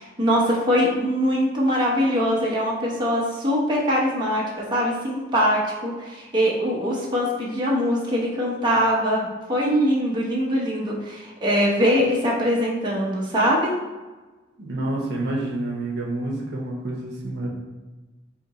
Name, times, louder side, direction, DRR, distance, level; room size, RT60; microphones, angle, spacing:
voice 1, 0.0-13.7, equal, 25° right, -5 dB, 0.8 m, -22 dB
voice 2, 14.5-17.5, right 2 dB, 60° right, -1 dB, 0.8 m, -28 dB
4.2 x 2.8 x 4.0 m, 1.2 s
head